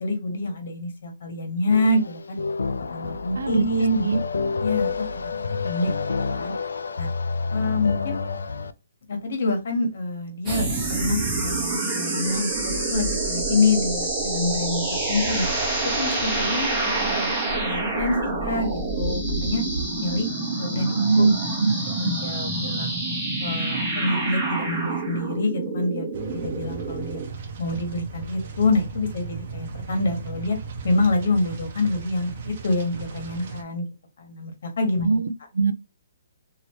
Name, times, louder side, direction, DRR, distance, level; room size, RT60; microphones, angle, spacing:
voice 1, 0.0-2.4 2.9-4.1 4.6-5.0 5.6-5.9 6.3-6.5 7.0-7.1 7.5-8.2 9.1-15.5 16.0-17.3 17.6-19.6 20.0-20.3 20.6-21.3 22.0-23.0 23.4-27.2 27.6-30.6 30.8-33.8 34.2-35.1, left 2 dB, 60° left, 1.3 m, -26 dB
sound 1, 1.7-8.7, left 4 dB, 90° left, 0.3 m, -28 dB
voice 2, 3.4-3.7 4.0-4.2 21.0-21.8 22.0-22.1 35.0-35.7, right 4 dB, 80° right, 0.4 m, -21 dB
sound 2, 10.5-27.3, right 2 dB, 15° right, 1.0 m, -27 dB
sound 3, 26.1-33.6, right 5 dB, 45° right, 0.8 m, -37 dB
3.0 x 2.7 x 3.0 m
hypercardioid pair, 160°, 0 cm